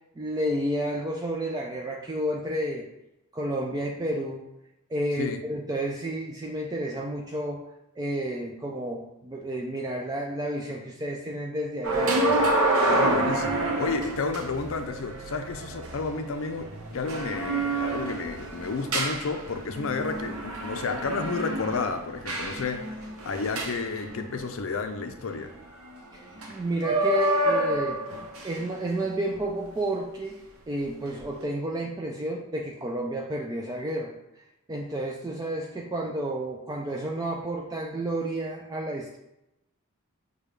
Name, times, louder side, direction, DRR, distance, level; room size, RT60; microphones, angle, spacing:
voice 1, 0.2-2.9 3.3-4.4 4.9-7.6 8.0-12.2 26.1-28.0 28.4-30.4 30.7-34.1 34.7-39.2, right 1 dB, 15° right, 0 dB, 0.3 m, -31 dB
sound 1, 11.8-24.6 26.4-26.5 26.8-28.6 29.3-29.5, right 1 dB, 75° right, 0.7 m, -28 dB
voice 2, 12.9-22.9 23.2-25.5, left 4 dB, 65° left, 6 dB, 0.5 m, -31 dB
6.6 x 2.3 x 3.2 m, 0.89 s
head